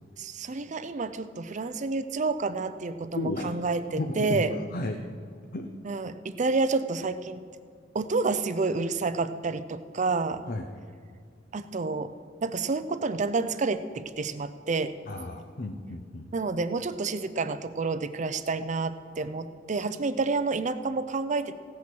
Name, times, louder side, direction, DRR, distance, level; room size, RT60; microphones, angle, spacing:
voice 1, 0.2-4.5 5.8-7.4 7.9-10.5 11.5-15.0 16.3-21.5, right 3 dB, 40° right, 12 dB, 0.5 m, -29 dB
voice 2, 3.1-5.0 5.5-5.7 10.5-10.6 15.1-16.3, left 2 dB, 50° left, 4 dB, 0.7 m, -33 dB
16.0 x 8.6 x 6.2 m, 2.1 s
head